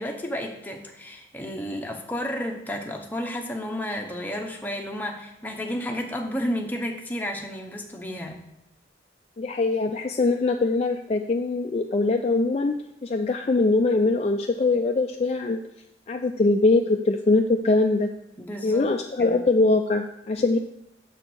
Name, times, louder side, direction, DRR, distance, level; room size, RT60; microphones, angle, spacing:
voice 1, 0.0-8.4 18.4-18.9 19.2-19.4, equal, 10° left, 1 dB, 0.8 m, -32 dB
voice 2, 9.4-12.7 13.0-15.6 16.1-18.1 18.6-20.6, left 3 dB, 35° left, 4 dB, 0.3 m, -22 dB
7.0 x 4.4 x 6.1 m, 0.82 s
head